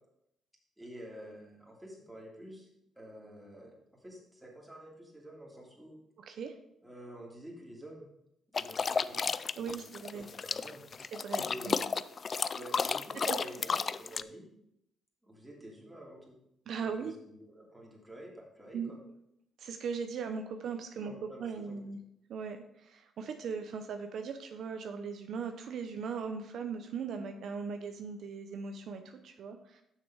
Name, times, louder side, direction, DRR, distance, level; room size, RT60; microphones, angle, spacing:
voice 1, 0.8-2.7 3.0-6.0 6.8-8.1 8.5-9.3 9.7-9.9 10.1-10.8 11.4-11.7 12.5-14.5 15.2-16.4 16.8-19.0 20.9-21.8, right 1 dB, 5° right, -3 dB, 2.7 m, -49 dB
voice 2, 6.2-6.6 9.6-10.3 11.1-11.8 13.1-13.4 16.7-17.1 18.7-18.9 19.6-22.0 22.3-29.8, right 5 dB, 70° right, 6 dB, 0.7 m, -39 dB
sound 1, 8.5-14.2, left 5 dB, 40° left, 0.3 m, -32 dB
6.8 x 6.2 x 4.8 m, 0.78 s
cardioid pair, 90°, 0 cm